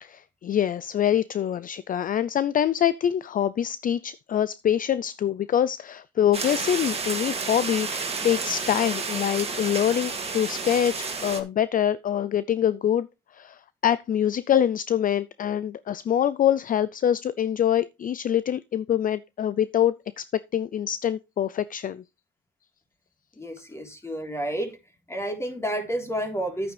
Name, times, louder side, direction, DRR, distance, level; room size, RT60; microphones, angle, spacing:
voice 1, 0.0-13.1 13.3-20.3 20.5-22.0, left 10 dB, 45° left, 0.4 m, -25 dB
sound 1, 6.3-11.4, right 4 dB, 30° right, 2.3 m, -31 dB
voice 2, 23.4-24.7 25.1-26.7, right 1 dB, 15° left, 3.7 m, -30 dB
10.5 x 9.0 x 3.3 m
cardioid pair, 90°, 20 cm